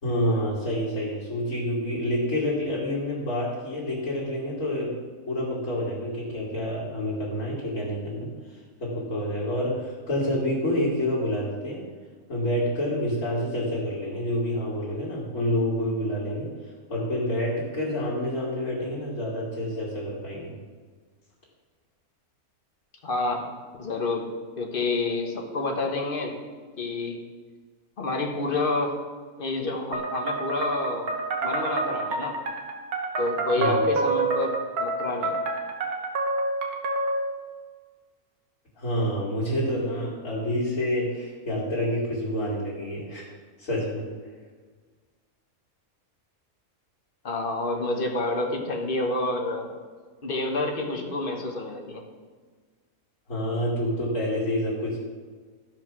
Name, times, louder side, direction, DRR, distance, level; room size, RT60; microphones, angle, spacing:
voice 1, 0.0-4.9 5.3-8.3 8.8-11.8 12.3-16.5 16.9-20.5 33.6-33.8 38.8-43.3 43.6-44.1 53.3-55.0, equal, 60° left, -8 dB, 3.0 m, -28 dB
voice 2, 23.0-23.4 23.8-24.3 24.6-26.3 26.8-27.2 28.0-28.9 29.4-31.1 31.4-32.3 33.2-35.4 47.2-49.7 50.2-52.0, left 2 dB, 40° left, 2 dB, 1.4 m, -28 dB
sound 1, 29.9-37.3, right 2 dB, 80° right, 1.7 m, -28 dB
14.0 x 5.3 x 6.1 m, 1.5 s
omnidirectional pair, 1.5 m